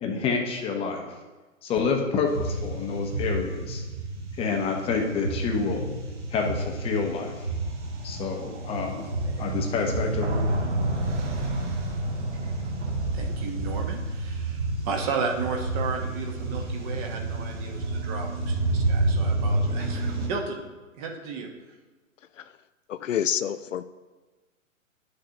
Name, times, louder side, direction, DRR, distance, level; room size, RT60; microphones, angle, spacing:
voice 1, 0.0-1.1 1.6-3.8 4.4-5.9 6.3-7.3 8.0-9.0 9.4-10.5, left 5 dB, 15° left, 2 dB, 0.8 m, -28 dB
sound 1, 2.3-20.3, right 2 dB, 60° right, 2.6 m, -29 dB
voice 2, 13.1-20.6 21.0-21.5, right 5 dB, 30° right, 2 dB, 1.1 m, -34 dB
voice 3, 22.9-23.8, left 9 dB, 70° left, 12 dB, 0.5 m, -27 dB
11.5 x 6.5 x 2.8 m, 1.2 s
figure-of-eight pair, 125°, 40 cm